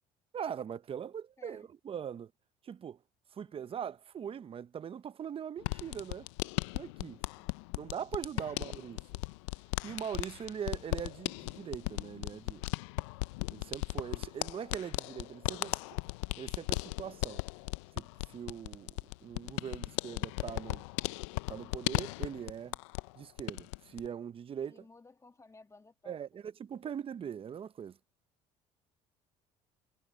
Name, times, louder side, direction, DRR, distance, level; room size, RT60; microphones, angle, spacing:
voice 1, 0.3-2.3 2.6-3.0 3.3-6.3 6.7-7.2 7.8-9.0 9.8-12.6 13.5-15.8 16.4-17.4 18.0-18.1 18.3-20.8 21.5-22.8 23.2-24.8 26.1-28.0, right 8 dB, 40° right, 0.8 m, -41 dB
voice 2, 1.4-1.7 3.4-3.9 7.3-7.6 8.3-8.5 10.4-10.5 24.6-26.2, left 3 dB, 20° left, 2.2 m, -59 dB
sound 1, 5.6-23.1 23.4-24.1, left 22 dB, 90° left, 0.5 m, -37 dB
supercardioid pair, 80°, 15 cm